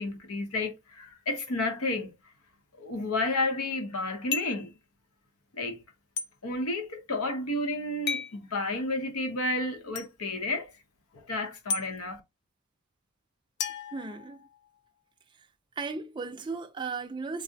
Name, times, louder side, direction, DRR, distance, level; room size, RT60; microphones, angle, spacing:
voice 1, 0.0-2.1 2.8-4.7 5.5-5.8 6.4-10.7 11.1-12.2, left 2 dB, 80° left, 0.8 m, -31 dB
sound 1, 4.3-4.7 6.2-6.3 8.1-8.4 9.9-10.1 11.7-11.8 13.6-14.7, left 6 dB, 50° left, 0.4 m, -33 dB
voice 2, 13.9-14.4 15.8-17.4, right 4 dB, 20° right, 0.4 m, -36 dB
4.6 x 2.0 x 2.6 m
head